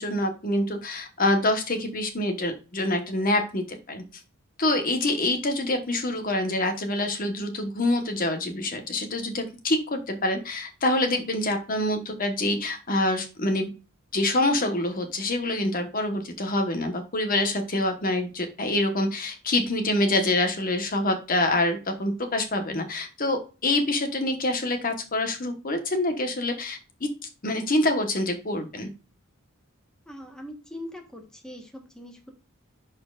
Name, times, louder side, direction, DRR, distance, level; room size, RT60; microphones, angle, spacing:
voice 1, 0.0-4.0 4.6-13.7 14.1-26.8 27.4-28.9, left 1 dB, 40° left, 5 dB, 1.2 m, -26 dB
voice 2, 30.1-32.3, left 1 dB, 5° left, 2 dB, 1.2 m, -41 dB
11.5 x 4.4 x 2.4 m, 0.32 s
head